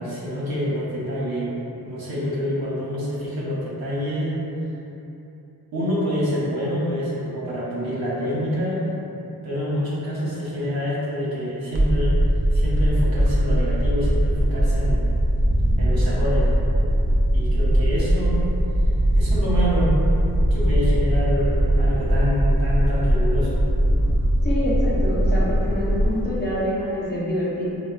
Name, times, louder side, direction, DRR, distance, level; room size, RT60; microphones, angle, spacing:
voice 1, 0.0-4.4 5.7-8.9 9.4-12.2 12.5-15.2 15.8-16.5 17.3-18.5 19.1-19.9 20.5-23.6, equal, 65° right, -8 dB, 0.7 m, -27 dB
sound 1, 11.7-26.2, equal, 35° right, 0.4 m, -20 dB
voice 2, 24.4-27.6, left 1 dB, 25° left, -9 dB, 0.7 m, -26 dB
4.1 x 2.0 x 2.3 m, 2.9 s
wide cardioid pair, 70°, 39 cm